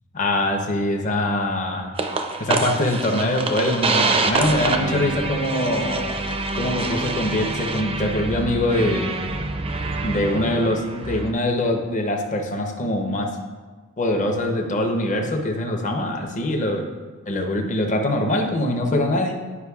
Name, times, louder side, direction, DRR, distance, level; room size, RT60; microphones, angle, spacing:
voice 1, 0.1-1.9 2.4-6.2 6.5-9.3 10.0-13.4 14.0-16.9 17.3-19.4, left 1 dB, 35° left, 3 dB, 0.7 m, -23 dB
sound 1, 2.0-11.3, right 3 dB, 25° right, 0.4 m, -26 dB
9.6 x 5.2 x 2.3 m, 1.4 s
head